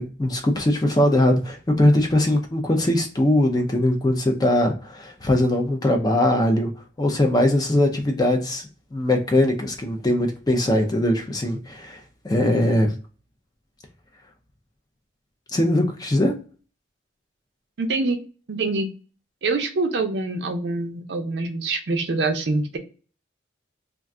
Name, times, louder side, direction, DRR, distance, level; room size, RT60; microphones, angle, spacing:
voice 1, 0.0-6.7 7.0-13.0 15.5-16.3, left 1 dB, 20° left, 3 dB, 0.4 m, -21 dB
voice 2, 17.8-18.2 18.5-18.9 19.4-22.8, right 3 dB, 65° right, 5 dB, 0.5 m, -25 dB
2.4 x 2.2 x 3.6 m, 0.38 s
head